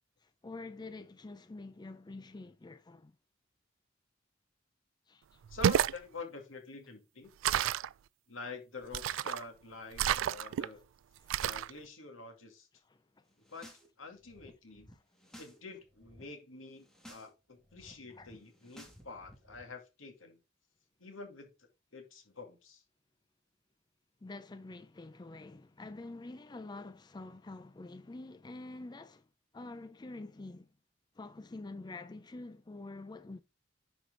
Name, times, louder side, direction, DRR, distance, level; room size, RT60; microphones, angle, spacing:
voice 1, 0.2-3.1 5.1-5.4 11.2-11.4 12.9-13.2 18.1-18.3 24.2-29.3 29.5-30.7 31.2-33.4, left 2 dB, 20° left, 0.4 m, -47 dB
voice 2, 5.5-7.3 8.3-10.8 11.4-12.7 13.5-13.7 14.0-14.9 15.4-20.4 21.0-22.8, left 4 dB, 90° left, 2.3 m, -47 dB
sound 1, 5.5-6.0 7.4-7.9 8.9-9.4 10.0-10.7 11.3-11.7, right 10 dB, 80° right, 0.3 m, -30 dB
sound 2, 13.3-13.9 14.1-15.6 15.8-16.2 16.7-17.3 17.6-19.6, equal, 5° left, 1.8 m, -56 dB
10.0 x 4.6 x 3.8 m
head